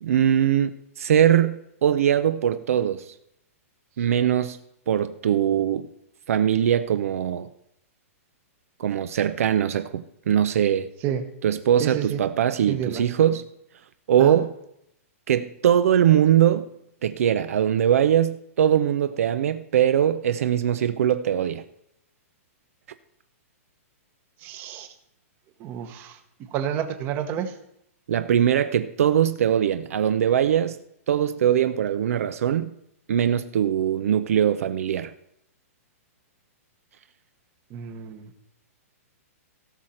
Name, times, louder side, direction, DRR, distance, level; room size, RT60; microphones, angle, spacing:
voice 1, 0.0-3.1 4.0-4.6 4.9-5.9 6.3-7.5 8.8-10.9 11.4-13.5 14.1-14.5 15.3-16.6 17.0-21.6 28.1-30.8 31.1-32.7 33.1-35.1, right 9 dB, 65° right, 0.6 m, -21 dB
voice 2, 11.8-12.2 12.7-13.0 14.2-14.4 24.4-24.9 25.6-26.2 26.5-27.5 37.7-38.3, right 9 dB, 25° right, 1.0 m, -29 dB
16.5 x 6.4 x 4.3 m
hypercardioid pair, 160°, 8 cm